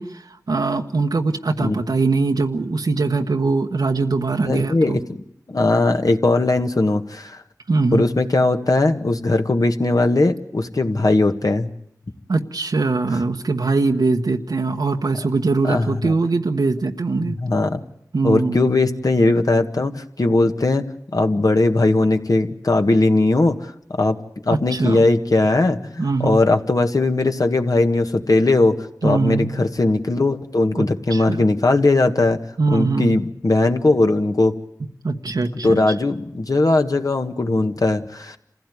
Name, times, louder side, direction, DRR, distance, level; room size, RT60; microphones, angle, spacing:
voice 1, 0.0-5.0 7.7-8.1 12.3-17.4 18.1-18.7 24.5-25.0 26.0-26.4 29.0-29.7 30.7-31.4 32.6-33.2 35.0-35.8, right 3 dB, 90° right, 3 dB, 1.2 m, -22 dB
voice 2, 4.4-5.0 5.5-7.4 7.9-11.7 15.6-16.1 17.2-17.8 18.2-20.8 21.1-23.7 24.0-24.2 24.4-32.4 32.7-34.6 35.6-38.4, left 2 dB, 65° left, 6 dB, 1.7 m, -19 dB
27.0 x 16.0 x 9.4 m, 0.76 s
wide cardioid pair, 45°, 7 cm